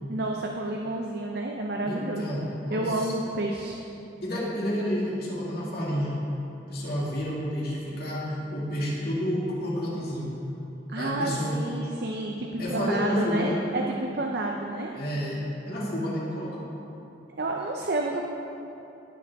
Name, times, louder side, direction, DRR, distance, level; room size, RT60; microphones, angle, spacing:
voice 1, 0.1-2.4 2.7-3.8 10.9-14.9 17.4-18.2, right 2 dB, 55° right, 0 dB, 0.6 m, -30 dB
voice 2, 1.8-3.1 4.2-6.2 6.7-10.3 11.0-11.5 12.6-13.6 14.9-16.7, equal, 55° left, -5 dB, 2.4 m, -30 dB
17.5 x 7.0 x 3.6 m, 2.9 s
head